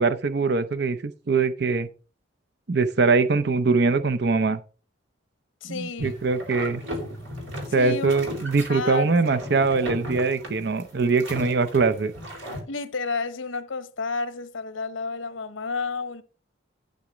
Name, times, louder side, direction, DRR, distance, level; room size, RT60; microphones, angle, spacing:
voice 1, 0.0-1.9 2.7-4.6 5.6-6.8 7.7-12.1, right 4 dB, 55° right, 0.6 m, -22 dB
voice 2, 5.6-6.1 7.8-8.1 8.7-9.1 12.7-16.2, left 4 dB, 80° left, 0.8 m, -31 dB
sound 1, 6.0-12.6, equal, 80° right, 3.5 m, -36 dB
12.0 x 4.1 x 5.0 m
head